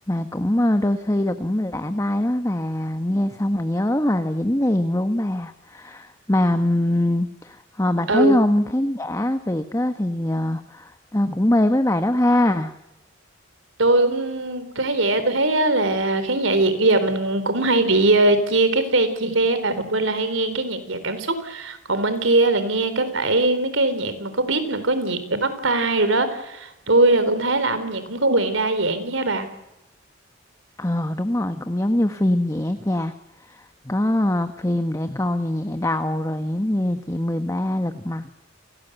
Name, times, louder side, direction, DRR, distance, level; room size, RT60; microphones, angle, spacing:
voice 1, 0.1-12.7 30.8-33.1 33.4-38.3, left 1 dB, 15° left, 8 dB, 1.1 m, -23 dB
voice 2, 8.1-8.4 13.8-29.5, right 2 dB, 80° right, 11 dB, 4.2 m, -21 dB
29.5 x 18.5 x 8.1 m, 0.94 s
head